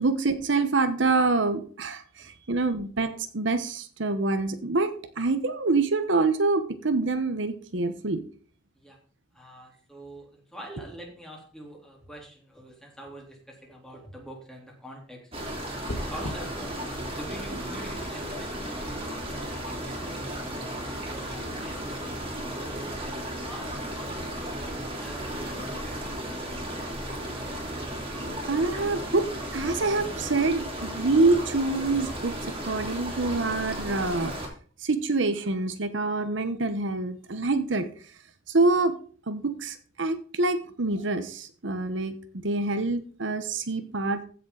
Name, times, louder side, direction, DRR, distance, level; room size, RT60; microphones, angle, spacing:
voice 1, 0.0-8.2 28.4-29.3 29.5-34.3 34.8-37.9 38.5-38.9 39.3-42.1 42.4-44.2, right 3 dB, 70° right, 10 dB, 1.0 m, -26 dB
voice 2, 9.3-15.3 15.9-22.0 22.6-26.8, right 1 dB, 5° left, -2 dB, 3.5 m, -45 dB
sound 1, 15.3-34.5, right 1 dB, 30° right, 3.2 m, -35 dB
sound 2, 15.9-16.3, left 1 dB, 70° left, 1.4 m, -33 dB
15.5 x 6.9 x 3.9 m, 0.43 s
head